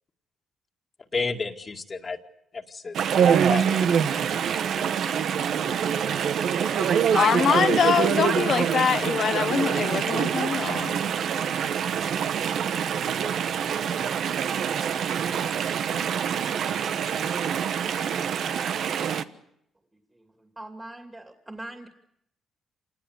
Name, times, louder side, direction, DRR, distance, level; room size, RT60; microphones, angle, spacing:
voice 1, 1.1-2.2 2.5-3.9, left 4 dB, 35° left, 3 dB, 2.0 m, -32 dB
Chatter / Stream, 2.9-19.2, right 8 dB, 70° right, 1.2 m, -25 dB
voice 2, 7.1-11.0, left 7 dB, 55° left, 11 dB, 1.2 m, -24 dB
voice 3, 19.9-21.9, right 1 dB, 15° right, 4 dB, 2.6 m, -42 dB
27.5 x 19.5 x 8.2 m, 0.78 s
cardioid pair, 90°, 0 cm